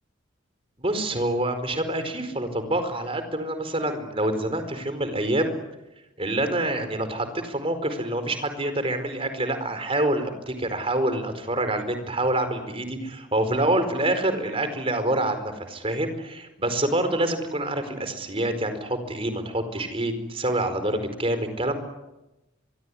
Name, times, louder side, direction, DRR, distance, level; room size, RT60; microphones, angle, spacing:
voice 1, 0.8-5.6 6.2-21.8, right 1 dB, 30° right, 9 dB, 4.6 m, -26 dB
25.5 x 23.0 x 10.0 m, 0.96 s
head